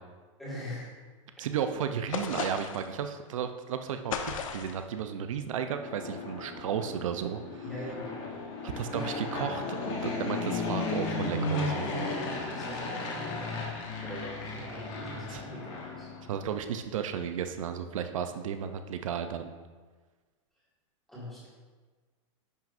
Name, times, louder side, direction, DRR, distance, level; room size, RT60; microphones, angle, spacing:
voice 1, 0.4-0.9 7.6-8.3 8.7-9.3 12.4-13.7 14.0-16.1 21.1-21.5, equal, ahead, -9 dB, 1.8 m, -42 dB
voice 2, 1.4-7.7 8.8-11.9 15.3-15.4 16.3-19.5, right 8 dB, 75° right, 8 dB, 0.5 m, -34 dB
sound 1, 2.1-2.9 4.1-4.8, left 6 dB, 90° left, 0.9 m, -35 dB
Fixed-wing aircraft airplane, 5.5-16.6, left 3 dB, 30° left, 1.0 m, -35 dB
10.5 x 6.0 x 2.5 m, 1.4 s
supercardioid pair, 180°, 17 cm